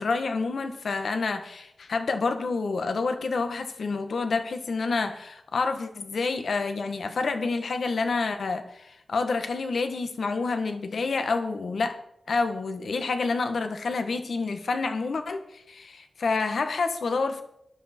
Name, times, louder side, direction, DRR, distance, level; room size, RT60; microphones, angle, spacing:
voice 1, 0.0-12.0 12.3-17.4, left 4 dB, 65° left, 8 dB, 1.4 m, -28 dB
14.5 x 12.5 x 4.4 m, 0.76 s
wide cardioid pair, 140°, 0 cm